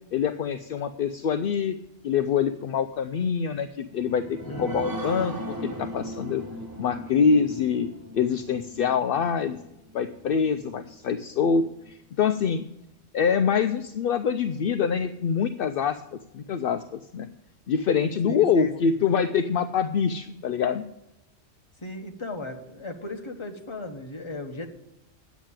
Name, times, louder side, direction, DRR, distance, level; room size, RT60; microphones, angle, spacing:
voice 1, 0.1-1.8 2.0-5.3 5.6-6.4 6.8-7.9 8.1-9.6 9.9-12.6 13.1-17.3 17.7-20.9, left 6 dB, 65° left, 9 dB, 0.6 m, -25 dB
sound 1, 3.8-10.9 11.4-11.5 11.8-11.9, right 1 dB, 15° right, 1.1 m, -38 dB
voice 2, 4.4-4.8 18.3-18.7 21.8-24.7, left 2 dB, 25° left, 4 dB, 1.1 m, -36 dB
9.1 x 7.3 x 8.8 m, 0.90 s
omnidirectional pair, 1.3 m